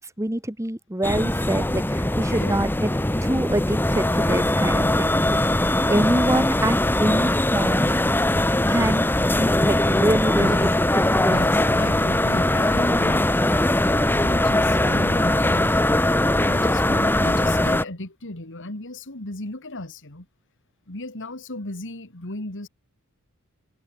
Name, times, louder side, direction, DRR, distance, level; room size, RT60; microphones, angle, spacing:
voice 1, 0.0-2.9 3.2-5.1 5.6-8.0 8.7-9.1 9.4-10.7 11.0-11.4, right 1 dB, 15° right, 1.6 m, -25 dB
sound 1, 1.0-17.8, left 1 dB, 10° left, 1.1 m, -21 dB
voice 2, 2.3-2.6 4.8-5.2 10.4-10.6 11.3-13.3 13.8-15.8 16.3-20.3 20.9-22.7, left 2 dB, 60° left, 2.9 m, -36 dB
head